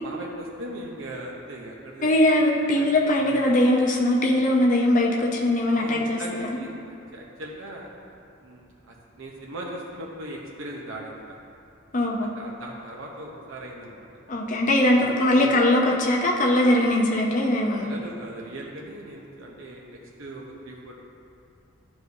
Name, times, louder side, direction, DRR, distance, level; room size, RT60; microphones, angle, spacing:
voice 1, 0.0-2.1 2.8-3.5 5.7-7.9 8.4-11.4 12.0-12.1 12.4-14.1 14.9-15.6 17.8-20.9, right 1 dB, 70° right, -2 dB, 0.7 m, -39 dB
voice 2, 2.0-6.6 11.9-12.3 14.3-17.9, left 1 dB, 35° left, -2 dB, 0.6 m, -21 dB
11.0 x 4.8 x 2.7 m, 2.5 s
head